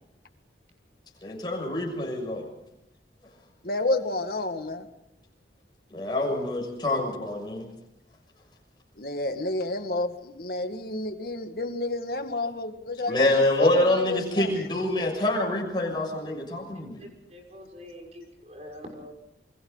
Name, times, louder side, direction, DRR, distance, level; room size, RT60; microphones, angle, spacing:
voice 1, 1.2-2.5 5.9-7.7 13.1-17.0, left 1 dB, 25° left, -1 dB, 6.6 m, -26 dB
voice 2, 3.6-4.9 9.0-14.6, left 2 dB, 55° left, 6 dB, 1.9 m, -30 dB
voice 3, 17.0-19.1, left 1 dB, 40° right, 1 dB, 5.9 m, -44 dB
28.5 x 25.0 x 4.0 m, 0.82 s
head